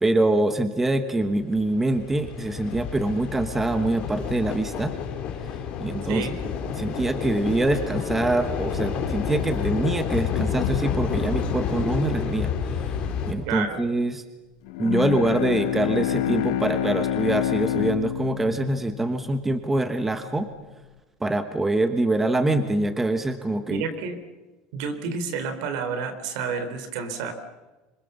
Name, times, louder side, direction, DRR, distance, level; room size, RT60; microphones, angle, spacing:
voice 1, 0.0-4.9 5.8-6.3 6.8-12.5 13.3-14.2 14.8-20.5 21.2-23.9 25.1-25.2, right 2 dB, 10° right, 8 dB, 1.2 m, -24 dB
sound 1, 1.4-13.3, left 7 dB, 35° left, 3.8 m, -29 dB
voice 2, 13.5-13.8 23.7-24.2 24.7-27.3, right 5 dB, 65° right, 8 dB, 4.0 m, -30 dB
Bowed string instrument, 14.7-20.0, left 12 dB, 70° left, 1.4 m, -28 dB
27.0 x 26.0 x 7.0 m, 1.2 s
cardioid pair, 175°, 3 cm